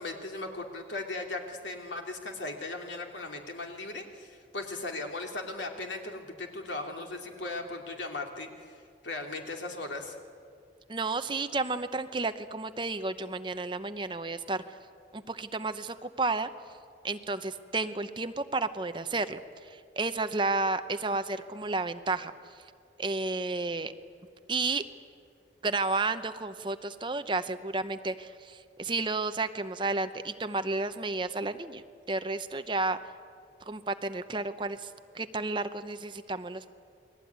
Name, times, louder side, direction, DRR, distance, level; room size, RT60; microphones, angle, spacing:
voice 1, 0.0-10.2, left 2 dB, 90° left, 2 dB, 3.1 m, -38 dB
voice 2, 10.9-14.8 15.1-16.5 17.0-22.3 23.0-23.9 24.5-24.8 25.6-33.0 33.6-36.7, right 3 dB, 25° right, 10 dB, 0.8 m, -32 dB
29.0 x 20.5 x 9.5 m, 2.4 s
head